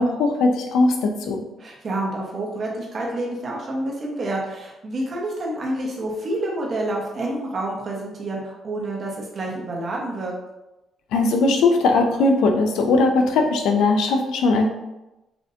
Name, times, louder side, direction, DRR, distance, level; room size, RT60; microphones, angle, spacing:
voice 1, 0.0-1.4 11.1-14.7, left 3 dB, 90° left, 4 dB, 0.6 m, -19 dB
voice 2, 1.6-10.3, right 1 dB, 45° right, -2 dB, 1.2 m, -28 dB
6.0 x 2.5 x 2.7 m, 0.97 s
cardioid pair, 90°, 0 cm